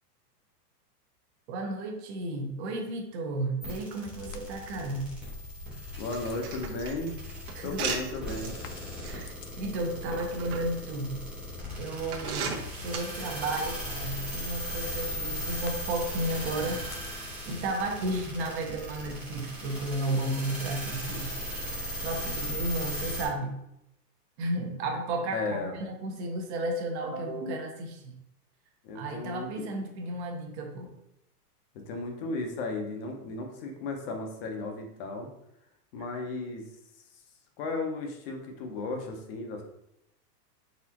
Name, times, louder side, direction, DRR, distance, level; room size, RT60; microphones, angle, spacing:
voice 1, 1.5-5.1 7.5-7.8 9.0-11.2 11.8-16.8 17.5-21.3 22.0-23.6 24.4-28.1 28.9-30.9, right 2 dB, 45° right, 2 dB, 0.9 m, -33 dB
sound 1, 3.6-23.3, equal, 5° right, 0.5 m, -38 dB
sound 2, 4.0-20.0, left 4 dB, 85° left, 0.7 m, -45 dB
voice 2, 6.0-7.2 7.6-8.6 25.3-25.7 28.8-29.6 30.1-30.2 31.9-35.3 35.9-36.6 37.6-39.6, left 3 dB, 35° left, 3 dB, 0.7 m, -35 dB
sound 3, 6.1-8.5 9.0-9.2 10.1-10.6 11.3-11.4 12.1-13.0, right 6 dB, 65° right, 1.1 m, -35 dB
4.2 x 3.6 x 2.9 m, 0.82 s
supercardioid pair, 160°, 48 cm